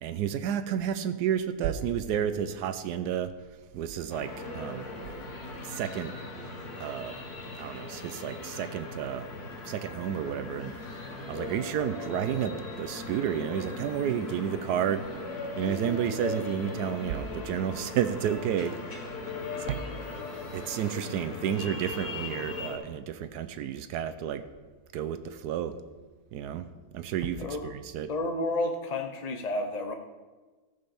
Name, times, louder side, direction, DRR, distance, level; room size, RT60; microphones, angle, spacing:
voice 1, 0.0-3.3 3.7-4.9 5.6-6.1 6.8-7.1 7.5-9.2 9.6-10.7 11.3-15.0 15.6-18.7 19.6-19.9 20.5-24.4 24.9-25.8 26.3-26.6 26.9-28.1, right 9 dB, 85° right, 11 dB, 1.2 m, -31 dB
sound 1, 4.1-22.8, left 3 dB, 70° left, 2.4 m, -39 dB
voice 2, 27.4-27.7 28.1-29.9, left 2 dB, 45° left, 5 dB, 0.5 m, -31 dB
14.0 x 5.3 x 7.0 m, 1.3 s
omnidirectional pair, 1.7 m